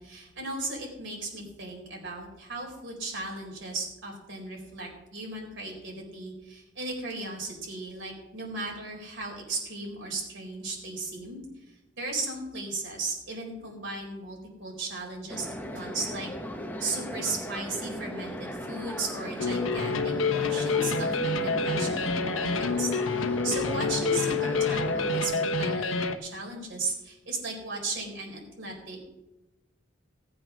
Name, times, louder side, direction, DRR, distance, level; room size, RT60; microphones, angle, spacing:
voice 1, 0.0-11.4 12.0-16.3 16.8-29.1, right 3 dB, 65° right, 0 dB, 4.3 m, -36 dB
sound 1, 15.3-25.2, equal, 10° left, 1.1 m, -37 dB
sound 2, 19.4-26.1, left 4 dB, 90° left, 1.1 m, -27 dB
18.0 x 7.9 x 6.2 m, 0.95 s
head